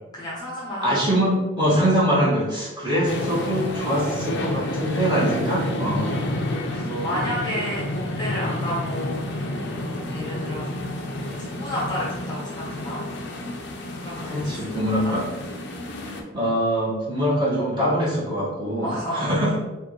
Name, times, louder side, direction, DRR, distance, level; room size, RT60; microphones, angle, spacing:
voice 1, 0.1-1.0 5.8-13.0 13.9-14.7 15.0-15.2 18.8-19.3, equal, 20° left, -6 dB, 0.8 m, -32 dB
voice 2, 0.8-6.1 6.7-7.1 14.2-15.3 16.0-18.9 19.1-19.6, equal, 20° right, -8 dB, 1.4 m, -23 dB
sound 1, 3.0-16.2, left 1 dB, 55° left, 0.5 m, -30 dB
4.8 x 2.5 x 3.0 m, 1.1 s
head